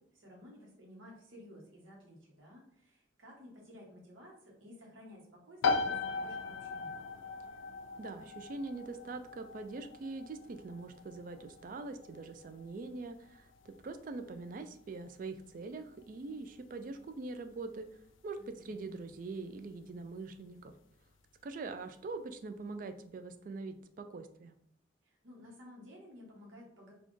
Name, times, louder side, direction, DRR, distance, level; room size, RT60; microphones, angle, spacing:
voice 1, 0.0-7.0 18.4-18.7 25.0-26.9, left 1 dB, 90° right, -3 dB, 1.0 m, -54 dB
sound 1, 5.6-20.1, left 4 dB, 85° left, 0.4 m, -40 dB
voice 2, 8.0-17.9 18.2-18.4 18.6-20.7 21.4-24.6, right 3 dB, 45° right, 8 dB, 0.3 m, -43 dB
4.1 x 2.3 x 3.1 m, 0.69 s
head